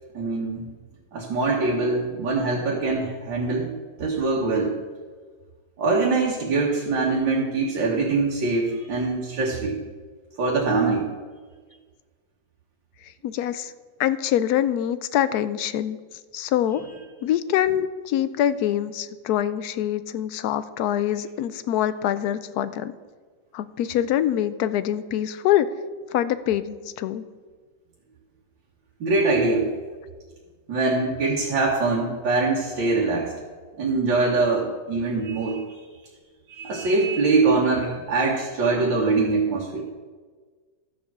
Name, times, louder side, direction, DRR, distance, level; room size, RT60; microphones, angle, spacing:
voice 1, 0.1-0.6 1.1-3.7 4.0-4.7 5.8-9.8 10.4-11.0 29.0-29.7 30.7-33.3 33.8-35.6 36.5-39.8, right 3 dB, 85° right, -3 dB, 2.1 m, -23 dB
voice 2, 13.0-13.7 14.0-16.0 16.3-16.8 17.2-22.9 23.5-25.7 26.1-27.3, left 11 dB, 70° left, 13 dB, 0.9 m, -24 dB
12.5 x 5.1 x 7.2 m, 1.5 s
omnidirectional pair, 2.0 m